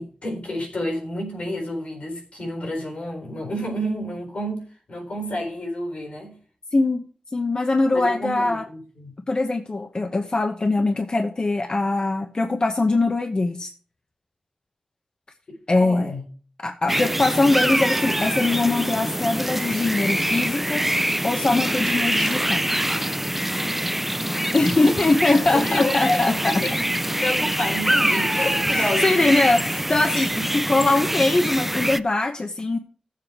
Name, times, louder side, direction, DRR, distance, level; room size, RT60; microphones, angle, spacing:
voice 1, 0.0-6.4 7.9-9.1 15.5-16.3 24.8-25.0 25.5-29.3 30.3-30.5, left 1 dB, 80° left, 4.0 m, -29 dB
voice 2, 6.7-7.0 7.3-8.6 9.3-13.7 15.7-16.1 16.6-20.9 21.2-22.6 24.5-26.5 28.7-32.8, left 2 dB, 45° left, 1.0 m, -22 dB
sound 1, 16.9-32.0, right 1 dB, 10° right, 0.5 m, -24 dB
14.5 x 7.6 x 4.8 m
wide cardioid pair, 85°, 2 cm